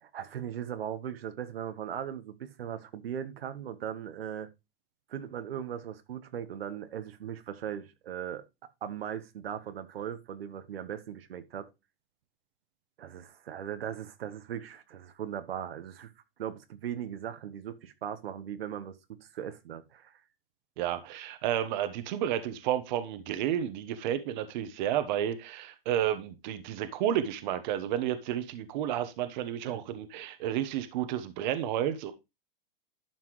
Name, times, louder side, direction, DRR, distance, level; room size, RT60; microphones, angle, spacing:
voice 1, 0.0-4.5 5.1-8.4 8.8-11.7 13.0-16.1 16.4-20.2 29.6-29.9, right 9 dB, 85° right, 1.4 m, -38 dB
voice 2, 20.8-32.1, right 10 dB, 50° right, 1.2 m, -31 dB
12.0 x 5.7 x 3.2 m
hypercardioid pair, 140°, 29 cm